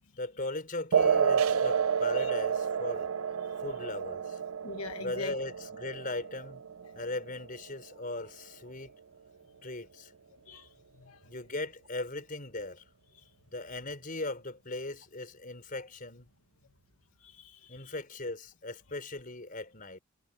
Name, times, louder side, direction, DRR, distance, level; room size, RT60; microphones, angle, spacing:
voice 1, 0.2-3.1 3.6-4.4 5.0-6.6 6.9-8.9 9.6-10.1 11.2-12.8 13.5-16.3 17.7-20.0, left 2 dB, 40° left, 5.0 m, -38 dB
sound 1, 0.9-7.9, right 7 dB, 70° right, 0.6 m, -30 dB
voice 2, 4.6-5.4 10.5-11.2 17.2-17.9, left 4 dB, 90° left, 1.5 m, -43 dB
head